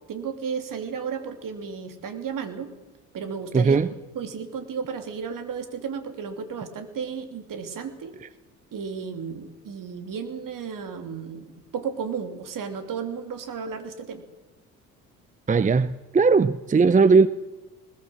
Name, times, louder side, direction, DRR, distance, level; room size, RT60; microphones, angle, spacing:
voice 1, 0.1-2.7 3.1-3.8 4.1-8.2 8.7-14.2, right 6 dB, 55° right, 3.0 m, -33 dB
voice 2, 3.5-3.9 15.5-17.3, right 4 dB, 20° right, 0.7 m, -18 dB
20.5 x 18.0 x 7.8 m
hypercardioid pair, 50°, 39 cm